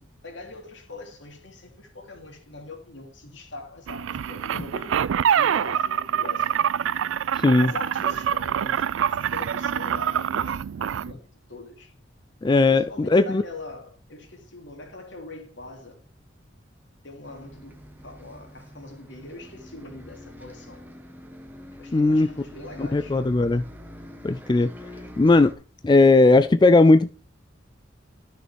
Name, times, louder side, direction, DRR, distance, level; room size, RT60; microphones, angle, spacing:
voice 1, 0.0-5.0 5.3-6.7 7.5-8.9 9.2-11.9 12.7-16.0 17.0-20.9 21.8-23.2, left 2 dB, 70° left, 2.9 m, -42 dB
sound 1, 3.9-11.1, right 8 dB, 80° right, 0.4 m, -25 dB
voice 2, 7.3-7.7 12.4-13.4 21.9-22.3 22.8-23.6 24.2-24.7 25.2-25.5 25.8-27.1, left 2 dB, 25° left, 0.3 m, -17 dB
Bus, 17.2-25.5, equal, 10° right, 1.2 m, -44 dB
12.5 x 6.3 x 3.4 m
head